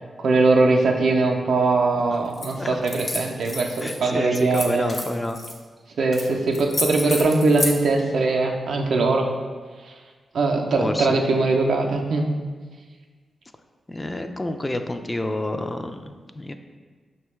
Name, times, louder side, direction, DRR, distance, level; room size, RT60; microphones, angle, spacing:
voice 1, 0.2-4.9 6.0-9.3 10.3-12.3, right 3 dB, 80° right, 1 dB, 0.4 m, -21 dB
sound 1, 2.3-2.5 2.8-4.0 4.3-5.5 6.1-6.3 6.5-7.8, left 2 dB, 45° left, 0.8 m, -29 dB
voice 2, 3.8-5.4 10.8-11.1 13.9-16.5, left 1 dB, 25° left, 7 dB, 0.3 m, -28 dB
5.4 x 2.2 x 3.0 m, 1.5 s
supercardioid pair, 45°, 0 cm